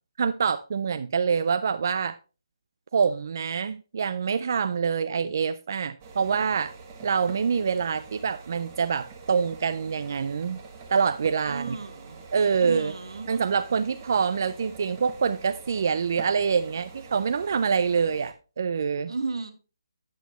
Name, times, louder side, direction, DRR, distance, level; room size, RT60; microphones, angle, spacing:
voice 1, 0.2-2.2 2.9-6.7 7.0-10.6 10.9-11.8 12.3-12.9 13.3-19.1, right 6 dB, 40° right, 0.3 m, -26 dB
sound 1, 6.0-18.3, right 4 dB, 20° right, 0.8 m, -45 dB
voice 2, 11.5-12.2 12.6-13.3 19.1-19.5, right 3 dB, 85° right, 1.5 m, -33 dB
8.3 x 8.2 x 3.0 m
hypercardioid pair, 175°, 3 cm